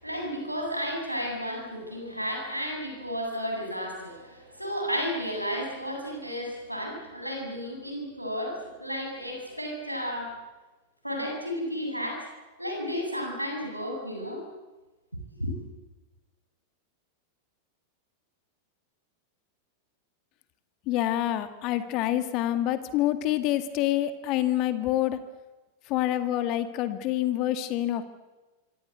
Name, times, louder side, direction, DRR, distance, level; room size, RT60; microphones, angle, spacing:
voice 1, 0.0-10.3 11.0-12.3 12.6-14.4 15.4-15.6, equal, 90° right, 1 dB, 7.9 m, -33 dB
voice 2, 20.9-25.2 25.9-28.0, left 13 dB, 40° left, 11 dB, 2.0 m, -27 dB
26.0 x 25.0 x 8.0 m, 1.2 s
figure-of-eight pair, 90°, 0 cm